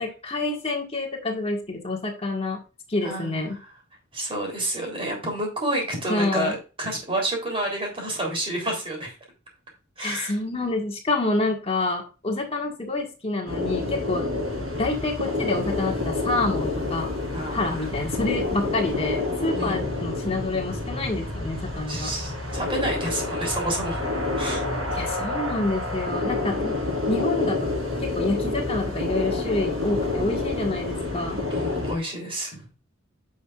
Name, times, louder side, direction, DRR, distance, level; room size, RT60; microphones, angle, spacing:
voice 1, 0.0-2.6 2.9-3.6 6.1-6.6 10.0-14.3 14.8-17.1 17.5-22.1 24.9-26.8 27.1-27.7 28.0-31.4, left 2 dB, 30° left, 1 dB, 1.7 m, -27 dB
voice 2, 3.0-3.4 4.1-9.1 10.0-10.3 17.3-17.9 19.5-19.8 21.9-24.0 24.4-24.6 31.5-32.7, right 1 dB, 25° right, 1 dB, 3.4 m, -29 dB
battle scene for film for game final by kk, 13.5-31.9, left 2 dB, 85° right, 4.5 m, -28 dB
9.3 x 6.5 x 2.5 m, 0.32 s
head